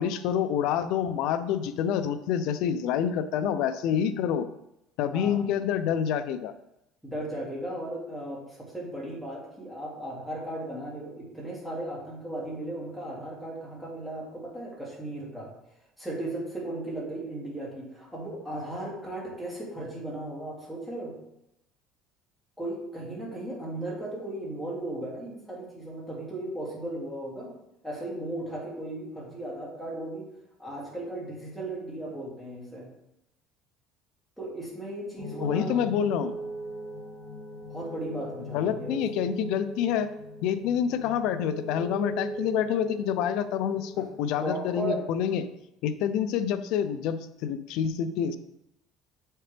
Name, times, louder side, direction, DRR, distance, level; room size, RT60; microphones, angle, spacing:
voice 1, 0.0-4.5 5.0-6.5 35.4-36.3 38.5-40.1 40.4-45.4 45.8-48.4, left 8 dB, 65° left, 10 dB, 0.5 m, -27 dB
voice 2, 7.0-15.5 16.0-21.2 22.6-27.5 27.8-30.3 30.6-32.9 34.4-35.8 37.7-39.0 44.0-44.1 44.4-45.1, right 1 dB, ahead, -6 dB, 2.3 m, -36 dB
sound 1, 35.2-44.8, right 1 dB, 35° left, 0.8 m, -39 dB
7.4 x 4.4 x 3.4 m, 0.84 s
cardioid pair, 150°, 0 cm